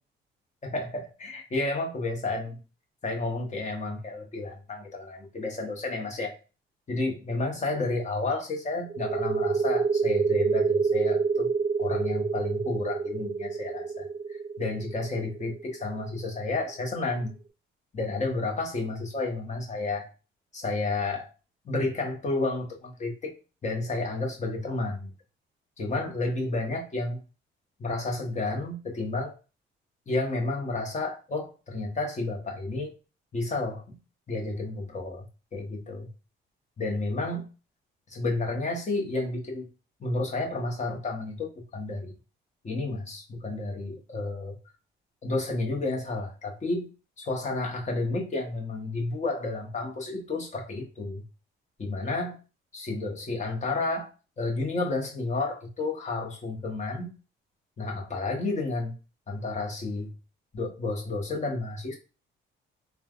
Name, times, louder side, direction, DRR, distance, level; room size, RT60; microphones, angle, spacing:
voice 1, 0.6-2.6 3.0-6.4 6.9-11.5 11.8-14.1 14.6-17.3 17.9-20.1 20.5-21.3 21.6-23.3 23.6-25.1 25.8-27.2 27.8-29.3 30.1-32.9 33.3-34.0 34.3-35.2 35.5-36.1 36.8-37.4 38.1-39.7 40.0-42.1 42.6-44.5 45.2-46.9 47.2-51.2 51.8-52.4 52.7-54.1 54.4-57.1 57.8-58.9 59.3-60.1 60.5-62.0, left 2 dB, 35° left, 1.0 m, -31 dB
sound 1, 8.9-16.3, right 5 dB, 30° right, 0.4 m, -27 dB
3.2 x 2.2 x 2.3 m
cardioid pair, 90°, 21 cm